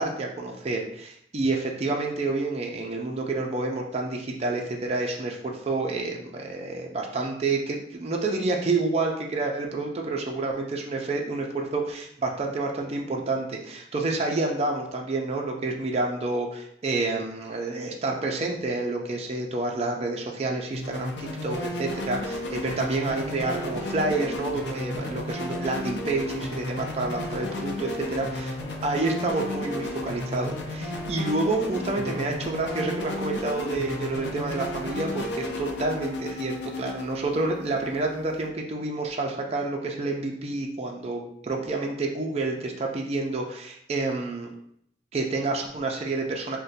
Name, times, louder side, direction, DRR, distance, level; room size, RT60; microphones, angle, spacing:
voice 1, 0.0-44.5 45.1-46.6, right 3 dB, 35° right, 1 dB, 0.4 m, -29 dB
piano+synth, 20.7-38.5, left 1 dB, 70° left, 0.5 m, -33 dB
2.6 x 2.1 x 3.9 m, 0.69 s
head